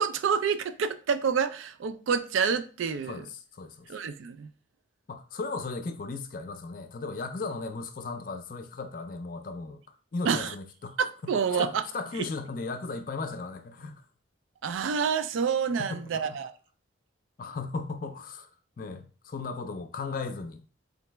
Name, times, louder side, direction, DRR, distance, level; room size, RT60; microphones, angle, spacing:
voice 1, 0.0-3.2 3.9-4.5 10.2-10.5 11.0-11.8 12.2-12.3 14.6-16.5, right 6 dB, 80° right, 0.3 m, -28 dB
voice 2, 3.1-3.9 5.1-9.8 10.1-11.3 11.6-14.0 15.8-16.4 17.4-18.5 18.8-20.6, left 3 dB, 45° left, 0.4 m, -36 dB
3.9 x 3.0 x 3.3 m
head